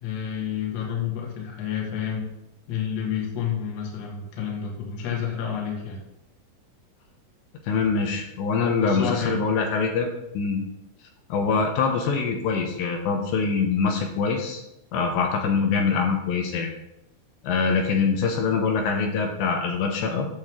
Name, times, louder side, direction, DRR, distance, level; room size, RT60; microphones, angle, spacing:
voice 1, 0.0-2.3 2.7-6.0 8.8-9.4, left 8 dB, 55° left, -1 dB, 2.0 m, -29 dB
voice 2, 7.6-10.1 10.3-10.6 11.3-14.6 14.9-16.7 17.4-20.3, left 5 dB, 75° left, 2 dB, 3.1 m, -24 dB
9.1 x 6.9 x 3.7 m, 0.87 s
omnidirectional pair, 5.3 m